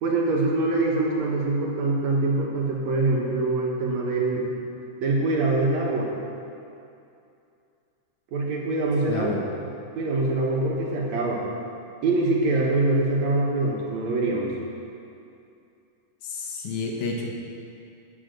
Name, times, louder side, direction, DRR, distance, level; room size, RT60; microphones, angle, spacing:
voice 1, 0.0-4.5 5.0-6.1 8.3-9.7 10.0-11.4 12.0-14.5, right 2 dB, 70° right, -2 dB, 2.4 m, -24 dB
voice 2, 9.1-9.4 16.2-17.3, left 4 dB, 75° left, 0 dB, 2.4 m, -30 dB
11.5 x 4.9 x 7.7 m, 2.6 s
omnidirectional pair, 3.5 m